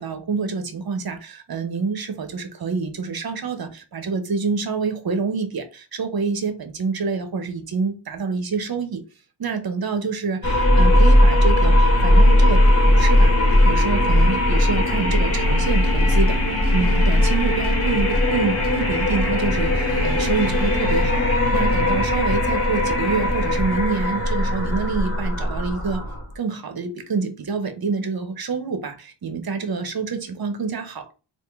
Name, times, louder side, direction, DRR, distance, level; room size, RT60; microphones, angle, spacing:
voice 1, 0.0-9.0 9.4-13.4 13.6-16.4 16.7-26.0 26.3-31.1, right 5 dB, 55° right, 0.8 m, -27 dB
sound 1, 10.4-26.3, left 1 dB, 30° left, 1.5 m, -18 dB
3.5 x 2.5 x 3.4 m
wide cardioid pair, 75°, 43 cm